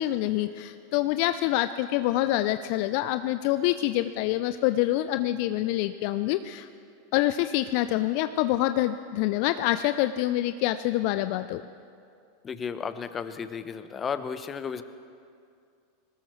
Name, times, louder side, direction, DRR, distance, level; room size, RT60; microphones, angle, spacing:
voice 1, 0.0-6.7 7.1-11.6, left 14 dB, 55° left, 11 dB, 0.4 m, -26 dB
voice 2, 12.4-14.8, left 6 dB, 25° left, 11 dB, 0.9 m, -33 dB
21.0 x 19.0 x 3.2 m, 2.3 s
hypercardioid pair, 95°, 0 cm